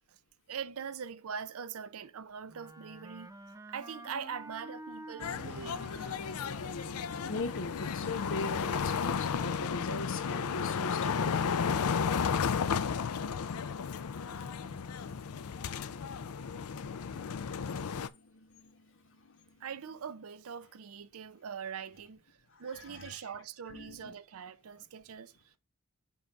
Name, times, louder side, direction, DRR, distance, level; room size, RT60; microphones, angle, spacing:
voice 1, 0.5-3.3 3.7-5.9 19.6-22.2 22.6-25.6, right 7 dB, 70° right, 0.5 m, -42 dB
Wind instrument woodwind instrument, 2.5-7.8, right 2 dB, 15° right, 0.5 m, -49 dB
sound 1, 5.2-18.1, left 6 dB, 75° left, 0.5 m, -33 dB
voice 2, 7.3-11.6 14.1-16.5 16.9-17.0 18.3-18.7 22.9-23.1 23.7-24.2, left 2 dB, 60° left, 1.2 m, -41 dB
7.2 x 2.6 x 5.8 m
head